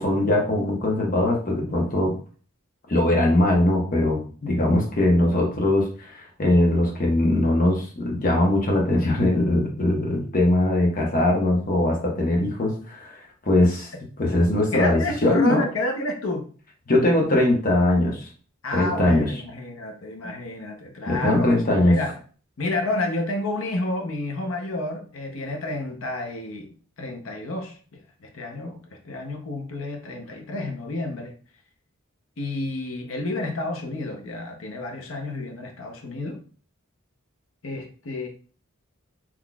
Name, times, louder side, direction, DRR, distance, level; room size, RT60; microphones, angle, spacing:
voice 1, 0.0-2.1 2.9-13.9 14.2-15.6 16.9-18.3 18.7-19.3 21.1-22.0, left 1 dB, 40° left, 0.9 m, -21 dB
voice 2, 14.7-16.5 18.6-22.2 22.6-31.3 32.4-36.4 37.6-38.3, left 2 dB, 75° left, 0.7 m, -30 dB
3.8 x 3.0 x 2.3 m
head